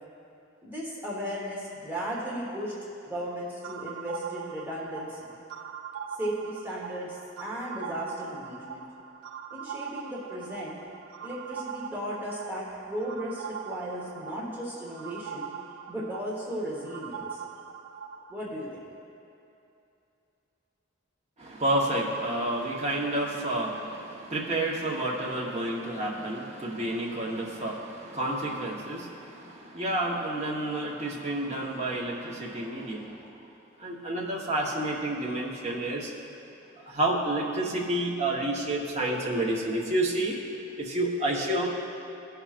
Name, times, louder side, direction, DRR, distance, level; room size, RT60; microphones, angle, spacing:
voice 1, 0.6-2.7 3.0-5.3 6.2-8.9 9.5-10.8 11.2-15.5 15.9-17.4 18.3-18.8, equal, 10° right, -6 dB, 1.2 m, -35 dB
sound 1, 3.6-18.4, right 7 dB, 90° right, 0.3 m, -41 dB
voice 2, 21.4-33.3 33.8-36.1 36.8-40.4 40.8-41.9, right 1 dB, 35° right, -3 dB, 1.1 m, -30 dB
16.5 x 5.7 x 2.5 m, 2.8 s
head